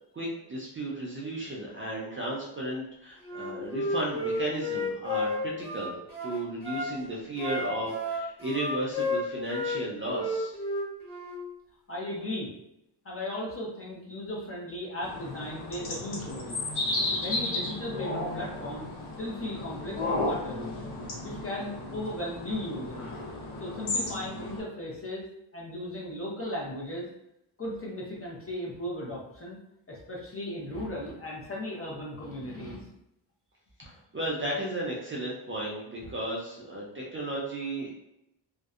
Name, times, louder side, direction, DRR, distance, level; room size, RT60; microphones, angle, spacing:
voice 1, 0.1-10.6 33.8-37.9, right 1 dB, 30° right, -5 dB, 0.4 m, -34 dB
Wind instrument woodwind instrument, 3.2-6.9 7.4-9.8 10.1-11.4, left 2 dB, 5° left, 1.0 m, -32 dB
voice 2, 11.9-12.5 13.0-16.6 17.2-18.9 19.2-20.7 21.2-23.1 23.6-25.3 25.5-27.1 27.6-29.6 29.9-32.9, left 1 dB, 30° left, -4 dB, 0.5 m, -36 dB
sound 1, 15.0-24.6, left 2 dB, 85° left, 0.7 m, -34 dB
2.6 x 2.1 x 2.3 m, 0.82 s
wide cardioid pair, 150°, 47 cm